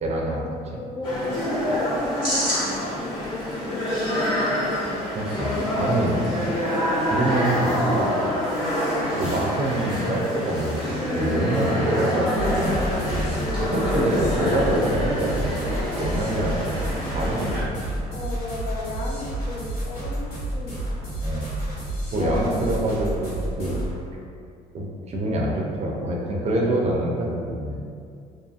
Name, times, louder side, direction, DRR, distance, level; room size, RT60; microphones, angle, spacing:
voice 1, 0.0-0.4 5.1-6.6 7.0-8.1 9.1-17.9 21.2-21.5 22.1-23.8 24.7-27.8, right 1 dB, 40° right, -2 dB, 0.5 m, -26 dB
voice 2, 0.8-4.1 15.7-16.1 18.1-21.0 22.1-22.8 23.6-23.8, left 2 dB, 50° left, -1 dB, 0.5 m, -34 dB
sound 1, 1.0-17.6, equal, 25° left, 1.1 m, -26 dB
sound 2, 12.3-24.0, right 1 dB, 70° left, 1.1 m, -30 dB
2.6 x 2.6 x 2.4 m, 2.4 s
cardioid pair, 110°, 17 cm